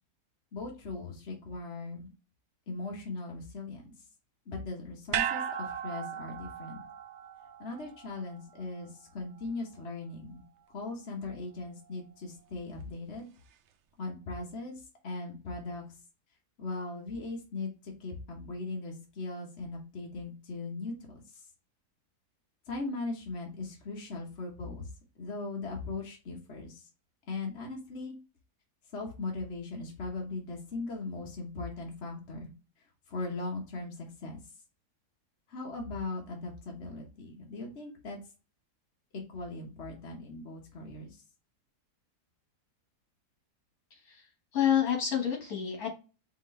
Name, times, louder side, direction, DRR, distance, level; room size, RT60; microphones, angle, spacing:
voice 1, 0.5-2.1 2.7-3.9 4.5-6.8 7.6-10.4 10.7-13.3 14.0-15.8 16.6-21.4 22.7-24.8 25.2-26.8 27.3-28.2 28.9-32.5 33.1-34.3 35.5-38.2 39.1-41.2, left 3 dB, 45° left, 0 dB, 1.3 m, -39 dB
sound 1, 5.1-9.5 9.8-9.9, right 9 dB, 75° right, 0.6 m, -37 dB
voice 2, 43.9-44.2 44.5-45.9, left 9 dB, 65° left, 1 dB, 1.9 m, -28 dB
5.1 x 3.1 x 3.1 m, 0.32 s
omnidirectional pair, 1.7 m